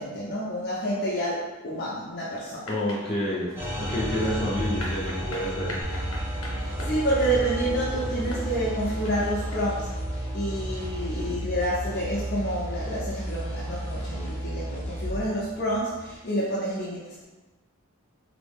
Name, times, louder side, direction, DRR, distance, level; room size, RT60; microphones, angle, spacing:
voice 1, 0.0-2.7 4.4-4.5 6.5-9.9 10.3-17.2, right 1 dB, 45° left, -8 dB, 0.7 m, -29 dB
sound 1, 2.6-9.6, left 1 dB, 75° left, 1.0 m, -40 dB
voice 2, 2.7-3.5 3.8-5.8 11.1-11.4, equal, 30° left, -5 dB, 1.0 m, -29 dB
sound 2, 3.6-16.1, equal, 10° right, 1.4 m, -36 dB
sound 3, 5.8-15.3, right 1 dB, 5° left, 1.2 m, -33 dB
4.0 x 2.9 x 3.5 m, 1.2 s
head